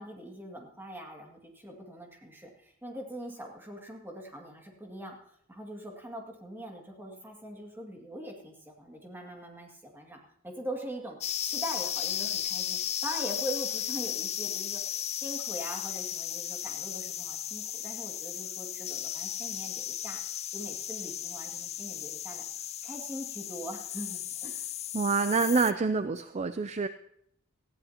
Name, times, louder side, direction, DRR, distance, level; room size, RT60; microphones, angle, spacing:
voice 1, 0.0-10.2 10.4-11.2 11.4-20.2 20.5-22.4 22.8-24.5, equal, 10° right, 0 dB, 2.2 m, -42 dB
sound 1, 11.2-25.7, left 10 dB, 30° left, 0.4 m, -35 dB
voice 2, 24.9-26.9, right 4 dB, 30° right, 10 dB, 0.4 m, -27 dB
18.5 x 14.5 x 2.9 m, 0.68 s
head